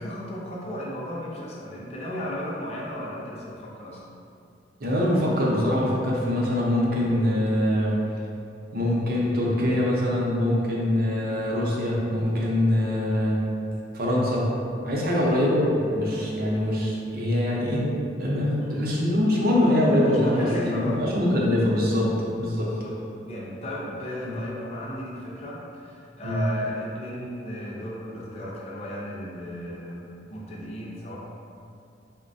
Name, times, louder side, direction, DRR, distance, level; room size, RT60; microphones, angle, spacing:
voice 1, 0.0-4.0 15.1-15.4 18.6-18.8 20.0-21.2 22.5-22.9 23.2-30.0 30.3-31.2, equal, 35° left, -4 dB, 0.4 m, -35 dB
voice 2, 4.8-8.0 8.7-13.4 13.9-14.5 14.8-17.9 18.2-22.7 24.2-24.4 26.2-26.4, left 1 dB, 55° right, -4 dB, 0.6 m, -23 dB
3.9 x 2.1 x 2.6 m, 2.5 s
head